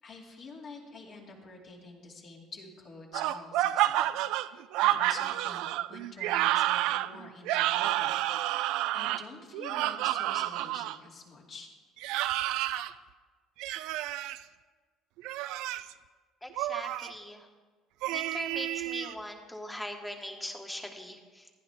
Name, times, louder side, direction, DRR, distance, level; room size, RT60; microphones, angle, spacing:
voice 1, 0.0-8.2 8.9-11.7, left 3 dB, 50° left, -1 dB, 2.6 m, -48 dB
sound 1, 3.1-11.0 12.0-12.9 13.6-14.4 15.2-15.9 16.6-17.1 18.0-19.1, right 14 dB, 80° right, 0.3 m, -30 dB
voice 2, 16.4-17.5 18.0-21.5, left 1 dB, 5° left, 3 dB, 1.5 m, -41 dB
15.0 x 10.5 x 3.5 m, 1.4 s
supercardioid pair, 100°, 0 cm